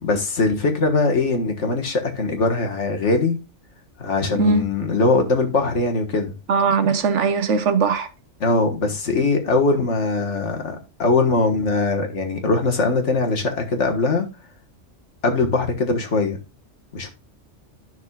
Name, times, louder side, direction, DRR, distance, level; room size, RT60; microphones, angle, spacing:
voice 1, 0.0-3.4 4.0-6.3 8.4-14.3 15.2-16.4 16.9-17.1, left 3 dB, 75° left, 1.8 m, -21 dB
voice 2, 6.5-8.1, right 5 dB, 80° right, 1.3 m, -19 dB
11.5 x 6.2 x 2.4 m
omnidirectional pair, 1.2 m